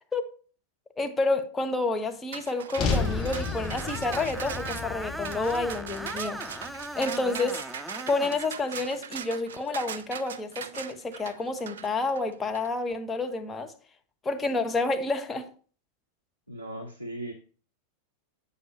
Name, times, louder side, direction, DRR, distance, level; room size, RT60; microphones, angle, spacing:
voice 1, 1.0-6.4 6.9-7.6 8.1-13.7 14.2-15.5, left 3 dB, 15° left, 0.9 m, -29 dB
sound 1, 2.3-12.7, right 7 dB, 65° right, 0.5 m, -40 dB
sound 2, 2.7-7.0, left 4 dB, 35° left, 1.6 m, -32 dB
Screech, 2.9-8.4, right 1 dB, 5° right, 0.3 m, -39 dB
voice 2, 16.5-17.3, right 1 dB, 90° left, 0.8 m, -37 dB
8.3 x 6.4 x 2.9 m
figure-of-eight pair, 90°, 0 cm